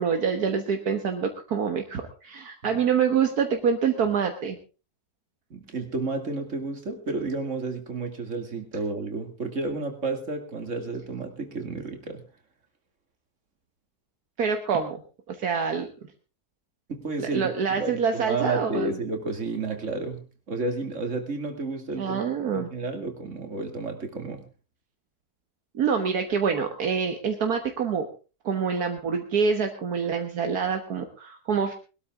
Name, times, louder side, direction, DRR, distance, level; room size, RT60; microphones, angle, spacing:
voice 1, 0.0-4.6 14.4-15.0 15.3-15.9 17.2-18.9 22.0-22.7 25.7-28.1 28.5-31.7, right 6 dB, 70° right, 5 dB, 1.8 m, -26 dB
voice 2, 5.5-12.2 16.9-17.5 17.8-22.2 22.5-24.5, right 3 dB, 50° right, 5 dB, 2.8 m, -31 dB
21.0 x 13.0 x 3.6 m, 0.34 s
omnidirectional pair, 1.7 m